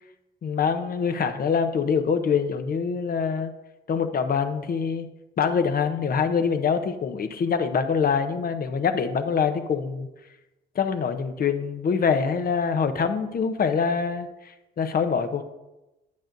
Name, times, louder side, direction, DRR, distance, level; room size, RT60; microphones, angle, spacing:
voice 1, 0.4-3.5 3.9-5.1 5.4-10.1 10.7-15.4, left 6 dB, 50° left, 8 dB, 0.8 m, -25 dB
10.5 x 8.7 x 2.6 m, 1.0 s
cardioid pair, 90°, 20 cm